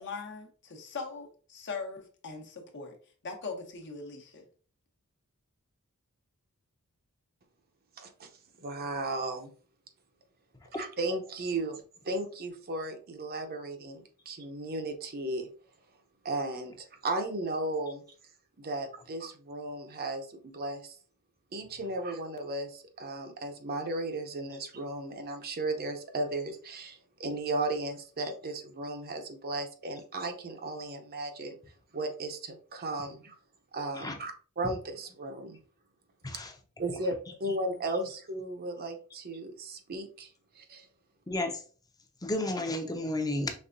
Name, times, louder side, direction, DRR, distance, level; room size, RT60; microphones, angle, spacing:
voice 1, 0.0-3.0 3.2-4.4, left 4 dB, 55° left, 1.0 m, -40 dB
voice 2, 8.0-8.3 8.6-9.5 10.7-15.5 16.2-18.0 18.6-21.0 21.5-31.6 31.9-33.4 33.7-35.6 36.8-37.1 37.4-40.9, right 2 dB, 45° right, 0.7 m, -35 dB
voice 3, 41.3-41.6 42.2-43.5, left 1 dB, 15° left, 0.7 m, -32 dB
5.3 x 3.4 x 2.6 m
head